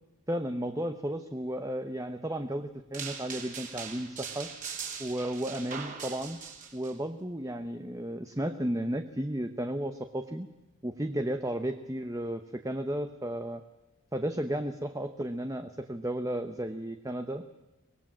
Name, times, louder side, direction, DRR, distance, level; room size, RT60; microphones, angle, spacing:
voice 1, 0.3-4.5 5.0-6.4 6.7-10.5 10.8-13.6 14.1-17.4, right 1 dB, 15° right, 7 dB, 0.9 m, -33 dB
sound 1, 2.9-6.9, right 6 dB, 35° right, 3.2 m, -41 dB
24.0 x 19.5 x 7.5 m, 1.0 s
head